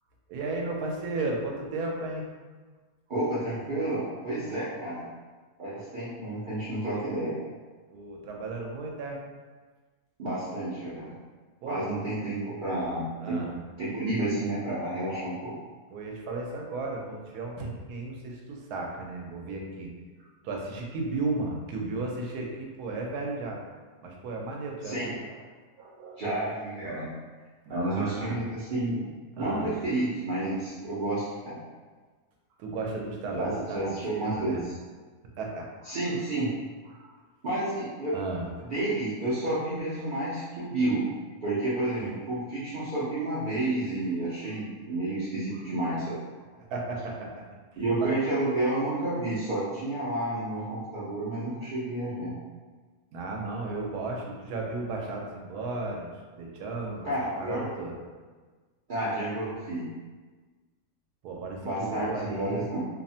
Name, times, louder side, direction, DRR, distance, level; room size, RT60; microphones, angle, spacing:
voice 1, 0.3-2.2 7.9-9.2 11.6-12.0 13.2-13.5 15.9-19.9 20.2-23.6 24.0-25.4 25.8-26.5 27.7-28.3 29.4-29.7 32.6-34.6 35.4-36.0 36.9-37.2 38.1-38.5 46.6-47.4 47.7-48.1 53.1-57.1 57.4-57.9 61.2-62.6, right 3 dB, 85° right, 0 dB, 1.1 m, -35 dB
voice 2, 3.1-5.0 5.6-7.3 10.2-11.1 11.7-13.4 13.8-15.5 24.8-25.1 26.2-27.1 27.7-29.0 29.4-31.5 33.3-34.7 35.8-36.5 37.4-38.1 38.7-41.1 41.4-46.2 47.8-52.3 57.0-57.7 58.9-59.9 61.6-62.8, right 1 dB, 65° right, -10 dB, 0.5 m, -30 dB
2.9 x 2.0 x 2.6 m, 1.4 s
omnidirectional pair, 1.6 m